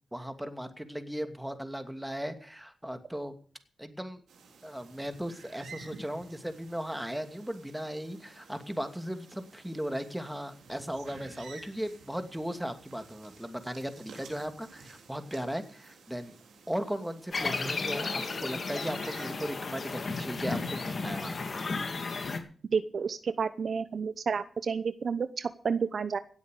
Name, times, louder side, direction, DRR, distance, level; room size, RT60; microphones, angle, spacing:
voice 1, 0.1-3.3 3.8-4.2 4.6-16.4 16.7-21.4, equal, 5° right, 8 dB, 2.6 m, -37 dB
sound 1, 4.3-21.8, right 4 dB, 85° right, 3.5 m, -53 dB
sound 2, 17.3-22.4, left 4 dB, 55° left, 2.4 m, -34 dB
voice 2, 22.7-26.2, right 6 dB, 65° right, 13 dB, 0.8 m, -30 dB
17.5 x 8.1 x 6.7 m, 0.43 s
supercardioid pair, 45°, 0 cm